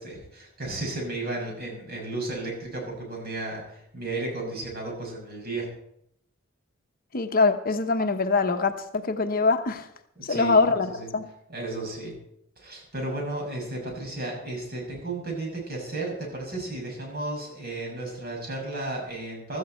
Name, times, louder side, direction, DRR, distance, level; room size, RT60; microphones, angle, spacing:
voice 1, 0.0-5.7 10.2-11.1 11.5-12.2 12.6-19.6, right 2 dB, 50° right, 0 dB, 6.2 m, -34 dB
voice 2, 7.1-9.9 10.2-11.3, left 4 dB, 45° left, 8 dB, 0.9 m, -23 dB
15.5 x 13.5 x 4.3 m, 0.74 s
head